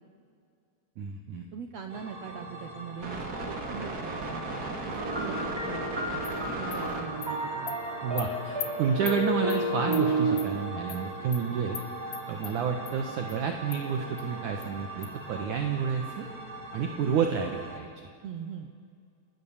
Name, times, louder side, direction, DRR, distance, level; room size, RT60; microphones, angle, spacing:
voice 1, 1.0-1.5 8.0-11.8 12.3-16.3 16.7-18.1, right 6 dB, 60° right, 5 dB, 2.4 m, -30 dB
voice 2, 1.5-4.4 4.9-6.2 6.5-7.8 18.2-18.7, right 7 dB, 85° right, 6 dB, 1.4 m, -41 dB
sound 1, 1.9-17.8, right 2 dB, 30° right, 2.1 m, -39 dB
sound 2, 5.0-10.4, right 1 dB, 5° right, 2.5 m, -31 dB
Animal, 6.2-6.3 6.7-6.8 7.2-7.3 7.7-7.8 8.2-8.3 8.6-8.7 9.1-9.2 9.5-9.6 9.9-10.0 10.4-10.5 10.9-11.0 11.3-11.4 11.8-11.9 12.1-12.5 12.9-13.0 13.3-13.4 13.7-13.8 14.2-14.3 14.6-14.7 15.0-15.1, left 11 dB, 70° left, 3.2 m, -38 dB
28.0 x 20.0 x 7.3 m, 2.2 s
omnidirectional pair, 4.7 m